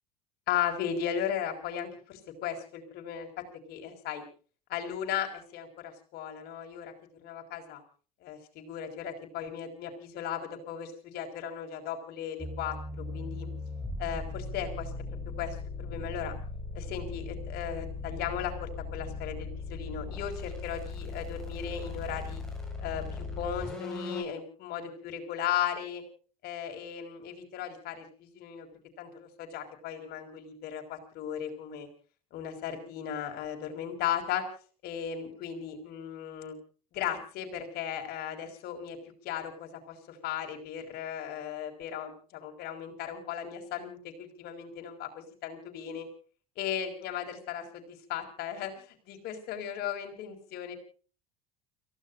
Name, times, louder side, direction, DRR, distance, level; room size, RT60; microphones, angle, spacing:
voice 1, 0.5-4.2 4.7-6.9 7.2-7.8 8.2-13.5 14.0-14.9 15.2-16.3 16.7-22.4 22.8-26.0 26.4-28.7 29.0-31.9 32.3-34.4 34.8-36.6 36.9-39.0 39.2-46.1 46.6-50.8, left 9 dB, 60° left, 4 dB, 6.0 m, -36 dB
sound 1, 12.4-24.2, left 3 dB, 5° left, 7.6 m, -38 dB
30.0 x 17.0 x 2.7 m, 0.40 s
supercardioid pair, 85°, 18 cm